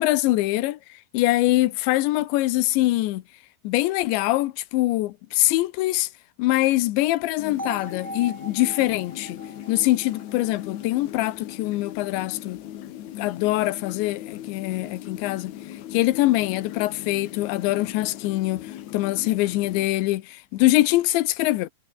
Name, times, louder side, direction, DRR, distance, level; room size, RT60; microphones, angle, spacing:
voice 1, 0.0-3.2 3.6-6.1 6.4-9.4 9.7-12.6 13.1-21.7, left 17 dB, 85° left, 3.3 m, -23 dB
sound 1, 7.4-19.9, left 12 dB, 70° left, 1.8 m, -39 dB
sound 2, 7.6-11.6, right 1 dB, 5° right, 2.8 m, -40 dB
omnidirectional pair, 5.0 m